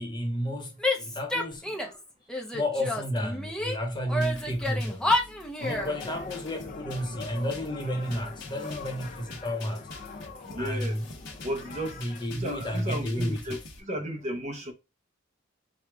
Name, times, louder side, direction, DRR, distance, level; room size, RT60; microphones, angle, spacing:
voice 1, 0.0-2.0 2.5-5.3 5.6-9.9 10.6-11.1 11.9-13.6, left 1 dB, 25° left, 1.1 m, -32 dB
Female speech woman speaking / Yell, 0.8-2.0 2.3-3.8 4.1-5.9, left 1 dB, 5° left, 0.7 m, -29 dB
sound 1, 4.2-13.8, left 3 dB, 65° left, 1.2 m, -46 dB
sound 2, 5.6-12.3, left 4 dB, 40° left, 0.6 m, -42 dB
voice 2, 10.5-11.0 11.4-12.0 12.3-14.7, right 1 dB, 35° right, 0.8 m, -34 dB
4.9 x 2.4 x 3.4 m
head